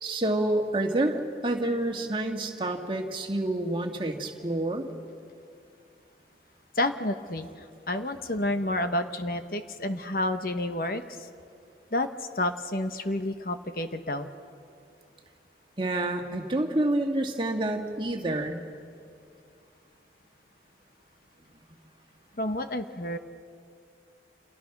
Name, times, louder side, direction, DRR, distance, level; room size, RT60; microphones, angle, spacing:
voice 1, 0.0-4.9 15.8-18.6, right 1 dB, 30° right, 3 dB, 2.0 m, -28 dB
voice 2, 6.8-11.3 11.9-12.1 12.3-14.3 22.4-23.2, left 1 dB, 50° left, 8 dB, 1.2 m, -30 dB
29.5 x 28.0 x 6.1 m, 2.4 s
head